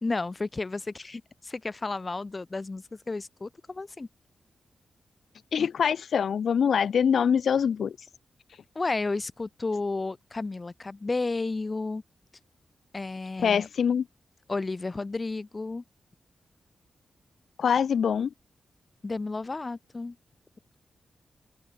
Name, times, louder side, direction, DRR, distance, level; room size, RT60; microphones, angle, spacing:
voice 1, 0.0-4.1 8.7-12.0 12.9-13.7 14.5-15.8 19.0-20.2, left 3 dB, 25° left, 2.4 m, -32 dB
voice 2, 5.5-8.0 13.4-14.1 17.6-18.3, left 7 dB, 70° left, 0.6 m, -24 dB
open air
wide cardioid pair, 160°, 0 cm